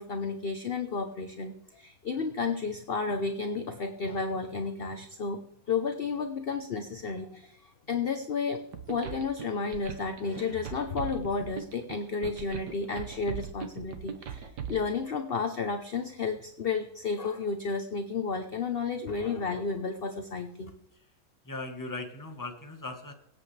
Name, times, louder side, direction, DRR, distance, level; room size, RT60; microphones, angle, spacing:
voice 1, 0.0-5.4 5.7-8.6 8.9-20.7, left 4 dB, 45° left, 5 dB, 0.8 m, -32 dB
sound 1, 8.7-14.8, right 7 dB, 75° right, 1.6 m, -39 dB
voice 2, 21.4-23.1, left 2 dB, 10° left, 4 dB, 1.3 m, -38 dB
24.0 x 8.2 x 3.3 m, 0.81 s
omnidirectional pair, 1.8 m